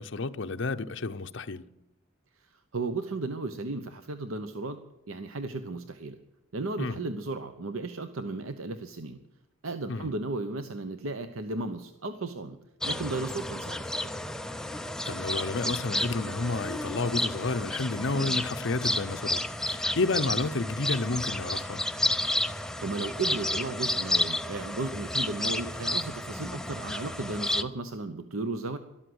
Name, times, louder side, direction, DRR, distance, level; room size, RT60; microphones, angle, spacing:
voice 1, 0.0-1.6 6.8-7.0 9.9-10.1 15.1-21.8, left 3 dB, 60° left, 0.7 m, -31 dB
voice 2, 2.3-6.2 6.5-9.2 9.6-12.6 12.8-14.1 22.8-28.8, right 3 dB, 80° right, 0.9 m, -35 dB
sound 1, 12.8-27.6, left 1 dB, 5° left, 0.5 m, -31 dB
13.0 x 12.5 x 7.9 m
head